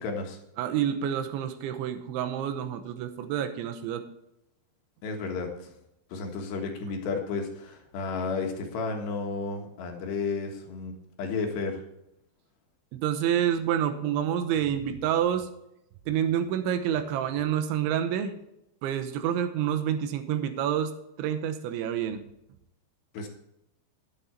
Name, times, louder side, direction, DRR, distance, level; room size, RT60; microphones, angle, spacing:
voice 1, 0.0-0.4 5.0-5.7 6.1-10.9 11.2-11.8 23.1-23.3, left 4 dB, 70° left, 3 dB, 3.4 m, -32 dB
voice 2, 0.6-4.0 12.9-15.5 16.1-18.3 18.8-20.9 21.2-22.2, right 9 dB, 80° right, 8 dB, 3.3 m, -28 dB
10.5 x 8.8 x 4.4 m, 0.81 s
omnidirectional pair, 5.4 m